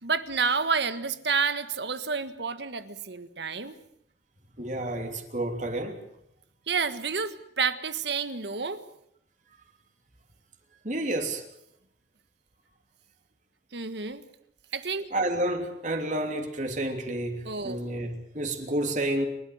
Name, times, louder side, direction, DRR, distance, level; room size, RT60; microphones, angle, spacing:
voice 1, 0.0-3.8 6.7-8.8 13.7-14.2 14.7-15.0 17.4-17.8, right 5 dB, 75° right, 1.6 m, -29 dB
voice 2, 4.6-6.0 10.8-11.4 15.1-19.2, right 1 dB, 45° right, 3.1 m, -30 dB
30.0 x 13.0 x 9.4 m
head